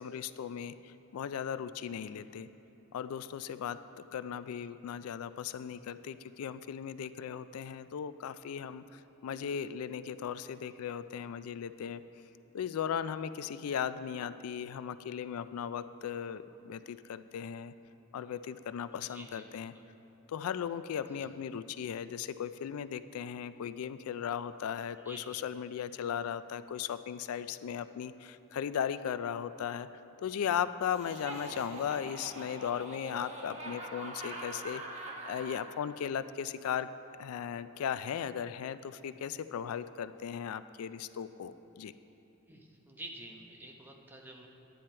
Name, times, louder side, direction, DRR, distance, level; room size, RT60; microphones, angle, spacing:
voice 1, 0.0-2.5 2.9-3.8 4.1-12.0 12.5-17.7 18.1-19.7 20.3-29.9 30.2-34.8 35.3-36.9 37.2-41.9, left 8 dB, 85° left, 14 dB, 0.3 m, -37 dB
voice 2, 18.9-19.8 21.1-21.3 25.0-25.4 42.5-44.5, right 1 dB, 10° right, 0 dB, 0.8 m, -49 dB
Laughter, 30.9-35.7, right 2 dB, 30° right, 1.1 m, -43 dB
11.0 x 9.3 x 4.4 m, 2.9 s
head